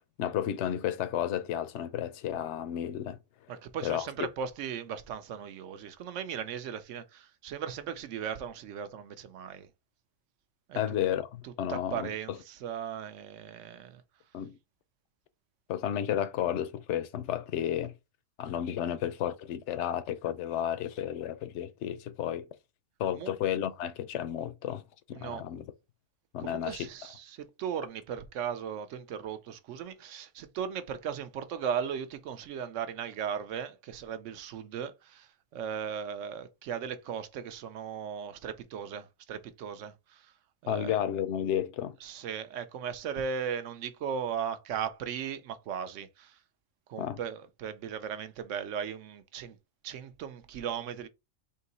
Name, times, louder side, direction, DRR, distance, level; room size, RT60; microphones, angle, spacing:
voice 1, 0.2-3.2 3.8-4.1 10.7-12.4 14.3-14.6 15.7-17.9 18.4-22.5 23.0-24.8 25.1-25.6 26.3-26.9 40.7-42.0 47.0-47.2, left 10 dB, 70° left, 0.8 m, -32 dB
voice 2, 3.5-9.7 10.7-11.0 11.4-14.0 23.1-23.3 25.1-25.4 26.4-40.3 40.6-41.0 42.0-46.3 46.9-49.6 49.8-51.1, right 7 dB, 70° right, 0.9 m, -37 dB
3.7 x 2.8 x 3.9 m
omnidirectional pair, 1.4 m